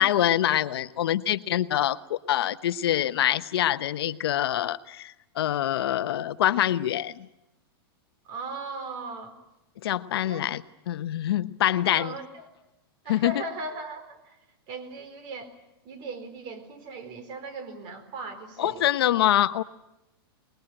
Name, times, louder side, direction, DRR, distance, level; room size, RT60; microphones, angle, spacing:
voice 1, 0.0-7.3 9.8-10.6 10.9-12.1 13.1-13.3 18.6-19.6, left 12 dB, 75° left, 12 dB, 1.1 m, -25 dB
voice 2, 8.2-9.4 10.2-10.5 11.9-12.5 13.0-14.4 14.7-15.5 15.8-19.2, right 3 dB, 40° right, 11 dB, 4.1 m, -38 dB
25.0 x 21.0 x 9.0 m, 0.90 s
supercardioid pair, 150°, 13 cm